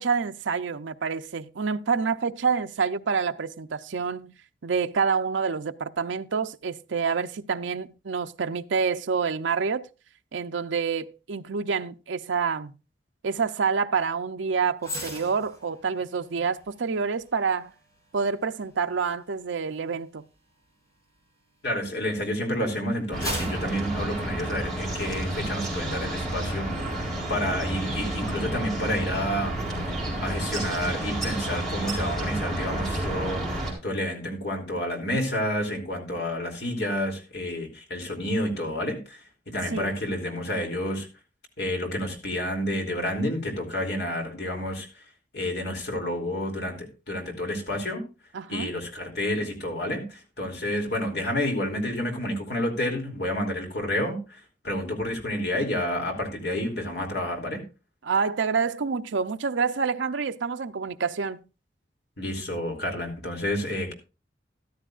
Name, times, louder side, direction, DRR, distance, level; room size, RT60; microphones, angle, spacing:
voice 1, 0.0-4.4 4.6-9.8 10.3-12.7 13.2-17.7 18.1-20.2 39.7-39.9 48.3-48.7 58.0-61.4, right 5 dB, 85° right, 0.6 m, -27 dB
sound 1, 14.8-22.2 22.7-25.0 25.4-25.6, equal, 20° left, 3.4 m, -41 dB
voice 2, 21.6-27.0 27.3-29.5 30.2-41.1 41.6-44.9 45.3-48.0 48.5-57.6 62.2-63.9, left 1 dB, 60° left, 2.9 m, -30 dB
sound 2, 23.1-33.7, right 1 dB, ahead, 4.3 m, -30 dB
13.5 x 12.5 x 2.4 m
head